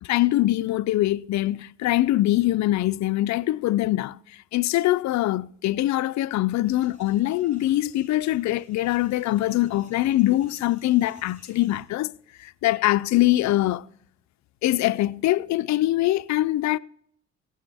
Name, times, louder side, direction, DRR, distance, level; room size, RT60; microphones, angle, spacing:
voice 1, 0.0-12.1 12.4-13.9 14.6-16.8, left 15 dB, 65° left, 0.5 m, -23 dB
sound 1, 6.6-11.8, equal, 25° right, 5.5 m, -56 dB
17.0 x 9.3 x 3.4 m
cardioid pair, 90°, 30 cm